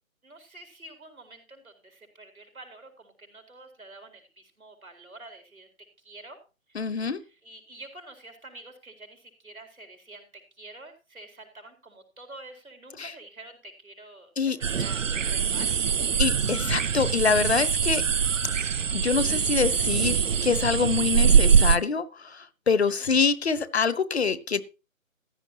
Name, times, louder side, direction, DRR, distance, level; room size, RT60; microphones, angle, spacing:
voice 1, 0.2-5.7 6.0-6.4 6.7-15.0 15.3-15.7 22.8-23.2, right 2 dB, 90° right, 4 dB, 4.8 m, -47 dB
voice 2, 6.7-7.2 13.0-13.1 14.4-14.6 16.2-18.0 18.9-22.0 22.3-24.6, left 5 dB, 50° left, 17 dB, 1.0 m, -25 dB
sound 1, 14.6-21.8, right 6 dB, 65° right, 0.7 m, -23 dB
15.0 x 11.0 x 2.9 m, 0.31 s
figure-of-eight pair, 155°, 41 cm